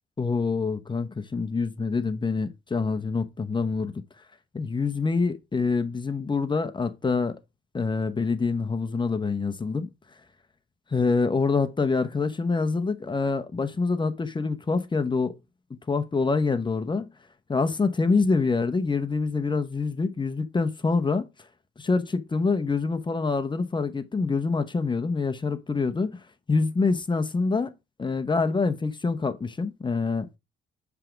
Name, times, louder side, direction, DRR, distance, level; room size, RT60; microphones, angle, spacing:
voice 1, 0.2-3.9 4.5-7.4 7.7-9.9 10.9-15.4 15.7-17.1 17.5-21.3 21.8-26.2 26.5-27.7 28.0-30.3, left 4 dB, 25° left, 0.9 m, -26 dB
7.6 x 3.5 x 5.1 m
cardioid pair, 90°, 20 cm